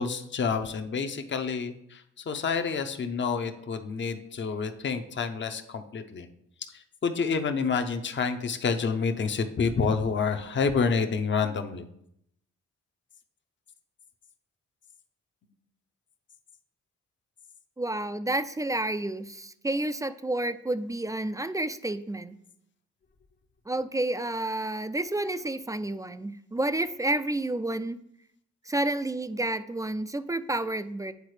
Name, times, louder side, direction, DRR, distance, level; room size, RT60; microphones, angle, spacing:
voice 1, 0.0-6.3 7.0-11.8, left 5 dB, 40° left, 7 dB, 0.7 m, -28 dB
voice 2, 17.8-22.4 23.7-28.0 28.7-31.1, right 1 dB, 10° right, 12 dB, 0.3 m, -30 dB
8.1 x 3.8 x 3.2 m, 0.75 s
supercardioid pair, 55°, 30 cm